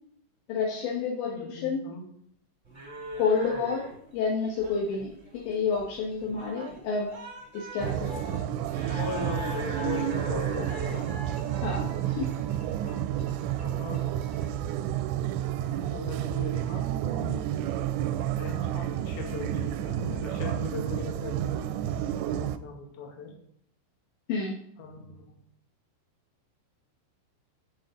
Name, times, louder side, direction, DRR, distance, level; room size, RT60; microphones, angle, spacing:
voice 1, 0.5-1.8 3.2-3.9 4.1-7.1 7.5-8.4 11.6-12.3 24.3-24.6, left 5 dB, 70° left, -2 dB, 3.5 m, -29 dB
voice 2, 1.2-2.0 8.9-11.1 12.8-13.0 13.6-14.0 15.6-16.9 18.4-21.7 22.3-23.3 24.8-25.3, left 4 dB, 55° left, 1 dB, 3.4 m, -39 dB
sound 1, 2.6-14.7, equal, 45° right, 0.9 m, -41 dB
sound 2, 7.8-22.6, right 11 dB, 80° right, 2.6 m, -30 dB
12.5 x 7.2 x 3.8 m, 0.71 s
omnidirectional pair, 5.7 m